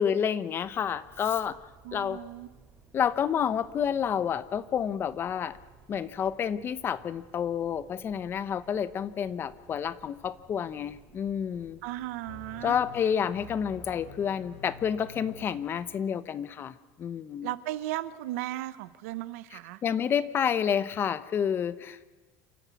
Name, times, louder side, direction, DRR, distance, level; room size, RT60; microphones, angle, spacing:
voice 1, 0.0-1.6 1.9-2.2 2.9-5.6 5.9-11.8 12.6-17.5 19.8-22.1, left 8 dB, 30° left, 14 dB, 0.9 m, -29 dB
sound 1, 0.6-14.4, right 4 dB, 20° right, 3.8 m, -58 dB
voice 2, 1.8-2.5 11.8-12.8 17.4-19.8, right 15 dB, 90° right, 14 dB, 1.1 m, -36 dB
sound 2, 12.3-16.3, left 4 dB, 55° left, 6.6 m, -49 dB
28.0 x 13.5 x 8.4 m, 1.2 s
cardioid pair, 145°, 8 cm